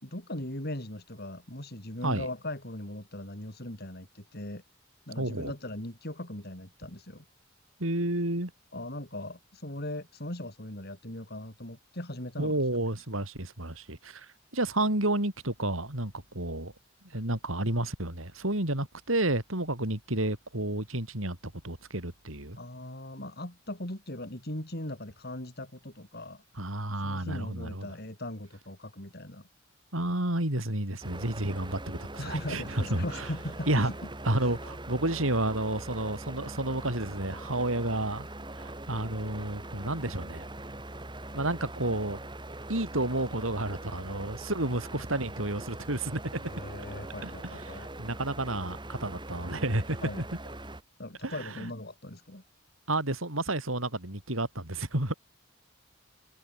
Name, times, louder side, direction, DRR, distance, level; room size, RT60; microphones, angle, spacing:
voice 1, 0.0-4.6 5.1-7.2 8.7-12.6 22.6-26.4 26.9-29.5 32.2-34.1 34.4-34.6 46.4-47.9 50.0-50.2 51.0-52.4, left 1 dB, 50° left, 5.2 m, -39 dB
voice 2, 5.2-5.5 7.8-8.5 12.4-16.7 17.0-22.6 26.6-27.9 29.9-33.3 33.7-33.9 34.3-38.3 38.5-40.4 41.3-42.2 42.7-46.2 47.2-50.0 51.2-51.7 52.9-55.1, right 1 dB, 80° right, 5.5 m, -31 dB
sound 1, 31.0-50.8, right 1 dB, 25° right, 4.2 m, -42 dB
head